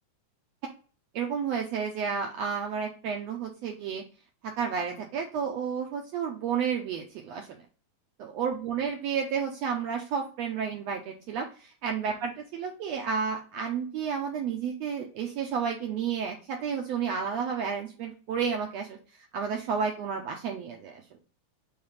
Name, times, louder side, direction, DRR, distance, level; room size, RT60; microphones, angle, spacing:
voice 1, 1.1-4.0 4.4-7.6 8.2-19.0 19.3-21.0, right 6 dB, 75° right, 2 dB, 1.5 m, -31 dB
4.7 x 3.6 x 5.5 m, 0.37 s
omnidirectional pair, 3.7 m